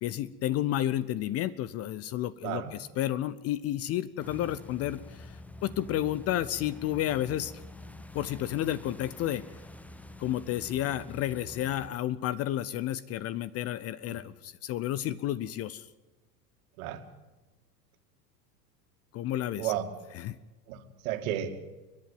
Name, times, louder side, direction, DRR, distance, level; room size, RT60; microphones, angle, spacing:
voice 1, 0.0-7.5 8.1-9.4 10.2-15.9 19.1-19.7 20.1-20.4, left 12 dB, 30° left, 19 dB, 0.7 m, -31 dB
sound 1, 4.2-11.9, left 2 dB, 5° left, 1.0 m, -47 dB
voice 2, 20.7-21.5, right 12 dB, 55° right, 6 dB, 2.6 m, -33 dB
30.0 x 11.0 x 9.1 m, 1.2 s
figure-of-eight pair, 85°, 50 cm